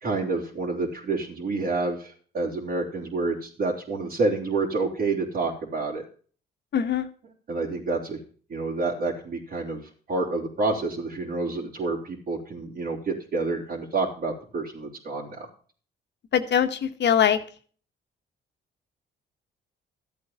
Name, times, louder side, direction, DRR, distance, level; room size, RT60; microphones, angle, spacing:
voice 1, 0.0-6.0 7.5-8.2 8.5-9.8 10.1-15.5, right 3 dB, 50° right, -6 dB, 4.0 m, -28 dB
voice 2, 6.7-7.1 16.3-17.4, left 8 dB, 60° left, 8 dB, 1.5 m, -22 dB
13.5 x 8.3 x 5.7 m, 0.42 s
cardioid pair, 90°, 20 cm